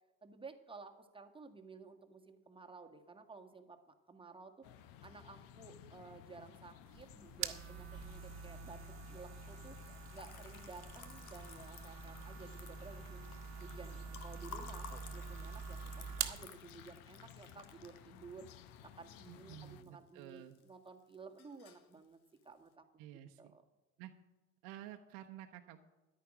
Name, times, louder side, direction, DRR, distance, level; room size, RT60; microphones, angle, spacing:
voice 1, 0.2-4.7 5.0-8.8 9.1-9.8 10.1-13.2 13.6-22.9 23.4-23.6, right 4 dB, 10° right, 4 dB, 1.6 m, -54 dB
sound 1, 4.6-19.8, left 10 dB, 55° left, 0.9 m, -57 dB
sound 2, 6.9-16.5, right 7 dB, 40° right, 1.3 m, -46 dB
Liquid, 9.7-19.9 20.2-20.9 21.1-21.9, left 7 dB, 85° left, 1.2 m, -55 dB
voice 2, 19.3-20.6 23.0-23.6 24.0-24.1 24.6-25.8, right 12 dB, 60° right, 4 dB, 1.0 m, -51 dB
14.0 x 10.5 x 5.0 m, 1.1 s
hypercardioid pair, 70°, 42 cm